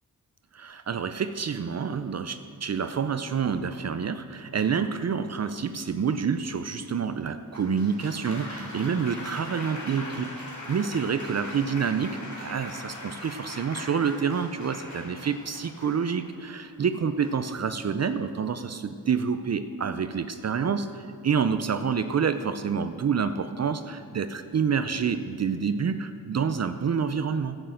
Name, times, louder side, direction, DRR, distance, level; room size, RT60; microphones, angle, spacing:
voice 1, 0.5-27.6, right 6 dB, 50° right, 10 dB, 0.6 m, -28 dB
Applause, 7.5-16.4 17.2-17.6, left 1 dB, 55° left, 3.1 m, -41 dB
11.0 x 8.0 x 7.6 m, 2.4 s
cardioid pair, 70°, 34 cm